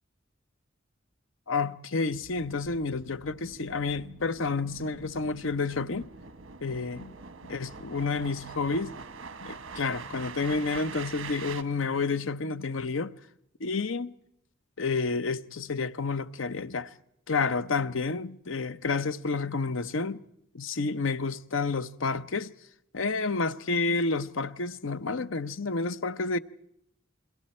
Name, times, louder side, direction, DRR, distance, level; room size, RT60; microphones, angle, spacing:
voice 1, 1.5-6.1 6.6-7.1 7.5-8.9 9.4-13.1 13.6-14.1 14.8-16.9 17.3-20.2 20.5-22.5 22.9-26.4, left 4 dB, 80° left, 0.8 m, -30 dB
sound 1, 2.1-11.6, right 5 dB, 85° right, 1.1 m, -44 dB
29.5 x 22.5 x 4.4 m
head